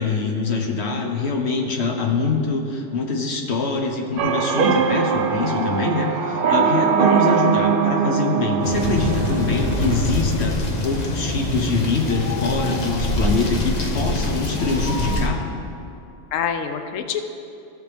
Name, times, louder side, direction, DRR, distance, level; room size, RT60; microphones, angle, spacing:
voice 1, 0.0-15.4, left 4 dB, 60° left, 2 dB, 1.2 m, -24 dB
sound 1, 4.2-10.1, right 7 dB, 60° right, 0.6 m, -21 dB
Yell / Screaming, 4.4-9.3, right 1 dB, 35° right, 1.9 m, -35 dB
voice 2, 6.5-6.8 7.1-7.3 16.3-17.2, left 7 dB, 80° left, 7 dB, 1.0 m, -27 dB
sound 2, 8.6-15.3, left 2 dB, 35° left, 0.9 m, -24 dB
15.5 x 6.4 x 3.5 m, 2.7 s
omnidirectional pair, 1.3 m